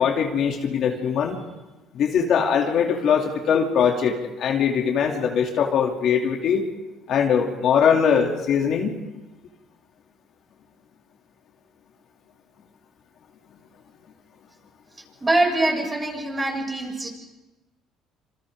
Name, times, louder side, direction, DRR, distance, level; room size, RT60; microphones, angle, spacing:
voice 1, 0.0-1.4 1.9-6.6 7.1-8.9, left 7 dB, 60° left, 1 dB, 2.7 m, -21 dB
voice 2, 15.2-17.1, right 2 dB, 20° right, 0 dB, 6.5 m, -23 dB
27.0 x 27.0 x 3.7 m, 1.1 s
cardioid pair, 100°, 0 cm